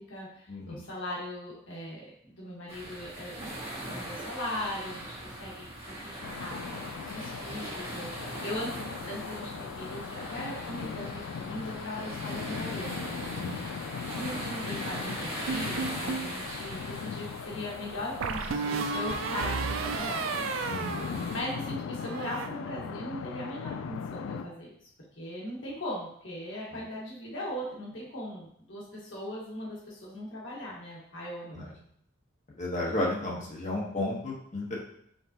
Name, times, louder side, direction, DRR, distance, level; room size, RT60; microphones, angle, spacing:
voice 1, 0.0-3.5 3.8-8.7 9.0-13.8 14.1-20.2 21.3-24.9 25.2-31.7, left 1 dB, 70° left, -5 dB, 1.5 m, -39 dB
sound 1, 2.7-21.4, right 1 dB, 35° right, 1.9 m, -40 dB
sound 2, 6.2-24.4, left 6 dB, 85° left, 0.3 m, -39 dB
sound 3, 15.5-16.3 18.2-21.7 22.0-22.5, right 5 dB, 80° right, 0.4 m, -33 dB
voice 2, 20.7-21.3 31.5-31.6 32.6-34.7, left 1 dB, 35° left, -3 dB, 1.2 m, -33 dB
5.1 x 3.7 x 2.9 m, 0.68 s
head